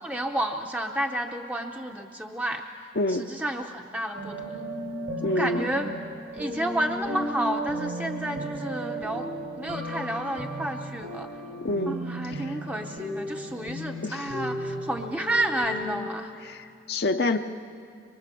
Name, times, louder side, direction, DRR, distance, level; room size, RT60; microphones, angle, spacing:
voice 1, 0.0-2.7 3.1-4.6 5.4-5.9 6.3-9.3 9.5-11.3 11.9-16.3, right 1 dB, 10° right, 3 dB, 0.7 m, -31 dB
voice 2, 3.0-3.3 5.2-5.7 11.6-12.0 12.3-12.5 14.0-14.2 16.4-17.4, left 2 dB, 60° left, 5 dB, 0.7 m, -27 dB
creepy score music - mozart - lacrimosa, 4.1-16.1, right 1 dB, 70° right, 4.0 m, -35 dB
24.0 x 23.5 x 6.8 m, 2.4 s
head